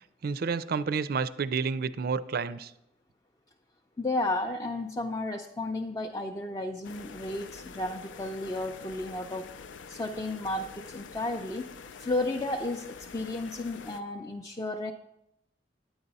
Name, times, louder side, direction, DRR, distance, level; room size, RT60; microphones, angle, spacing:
voice 1, 0.2-2.7, right 5 dB, 55° right, 15 dB, 0.4 m, -30 dB
voice 2, 4.0-9.5 9.9-11.7 12.0-14.9, left 2 dB, 20° left, 2 dB, 0.4 m, -33 dB
sound 1, 6.8-14.0, left 5 dB, 90° left, 0.5 m, -46 dB
10.0 x 8.8 x 4.0 m, 0.82 s
head